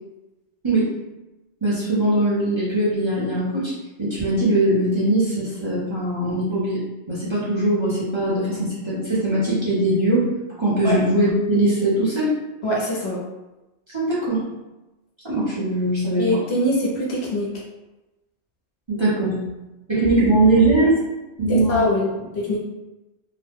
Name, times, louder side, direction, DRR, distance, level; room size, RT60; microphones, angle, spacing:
voice 1, 1.6-3.7 4.0-6.8 7.1-10.3 10.6-12.3 13.9-14.4 15.2-16.4 18.9-19.4 19.9-21.0 21.4-21.9, right 1 dB, 30° right, -9 dB, 0.8 m, -21 dB
voice 2, 12.6-13.2 16.2-17.5 21.5-22.6, left 1 dB, 70° left, -4 dB, 1.1 m, -23 dB
2.9 x 2.2 x 3.4 m, 1.0 s
omnidirectional pair, 1.1 m